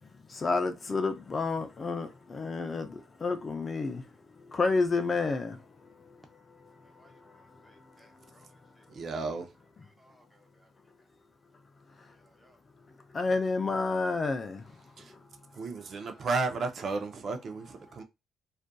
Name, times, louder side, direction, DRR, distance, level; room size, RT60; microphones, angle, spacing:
voice 1, 0.3-4.0 4.5-5.6 13.1-14.6, left 3 dB, 35° left, 0.4 m, -29 dB
voice 2, 7.0-8.5 8.8-8.9 10.0-10.7 12.2-12.6 15.5-16.3, right 1 dB, 5° right, 0.7 m, -63 dB
voice 3, 8.9-9.5 15.0-15.1 15.6-18.0, right 4 dB, 50° right, 0.5 m, -33 dB
2.5 x 2.4 x 2.2 m
cardioid pair, 90°, 0 cm